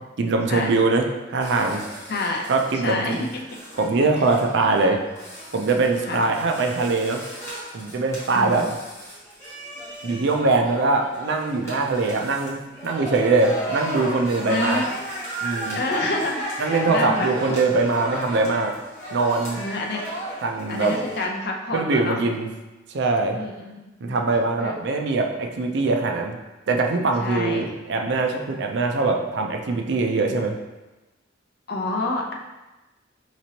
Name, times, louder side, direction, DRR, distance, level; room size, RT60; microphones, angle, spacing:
voice 1, 0.2-1.8 2.5-3.3 3.7-5.0 5.5-7.2 7.7-8.7 10.0-14.8 15.4-15.8 16.6-18.7 19.1-19.6 20.4-21.0 21.7-22.5 22.9-23.4 24.0-26.4 26.7-30.6, right 3 dB, 65° right, 3 dB, 0.5 m, -22 dB
sound 1, 1.4-21.2, right 1 dB, 15° left, 1.2 m, -35 dB
voice 2, 2.1-2.4 2.8-3.4 6.1-6.2 8.3-8.7 14.5-14.9 15.7-16.6 16.9-17.3 19.6-20.0 20.7-22.2 23.3-24.1 24.6-24.8 27.2-27.6 31.7-32.3, left 2 dB, 55° left, 1 dB, 0.6 m, -28 dB
5.0 x 3.0 x 2.8 m, 1.1 s
head